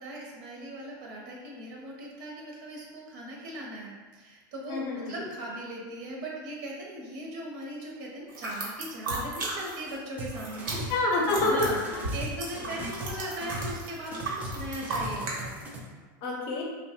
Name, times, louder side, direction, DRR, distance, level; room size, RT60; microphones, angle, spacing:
voice 1, 0.0-10.9 11.4-15.5, right 1 dB, 60° right, -2 dB, 0.6 m, -39 dB
voice 2, 4.7-5.3 10.7-11.6 11.9-12.0 16.2-16.6, left 2 dB, 40° left, -1 dB, 0.6 m, -28 dB
sound 1, 8.3-10.0 10.2-15.4, right 3 dB, 90° right, 0.9 m, -36 dB
sound 2, 10.2-11.0 11.2-13.8 14.1-15.8, right 1 dB, 15° right, 0.4 m, -38 dB
3.0 x 2.1 x 2.8 m, 1.4 s
supercardioid pair, 145°, 11 cm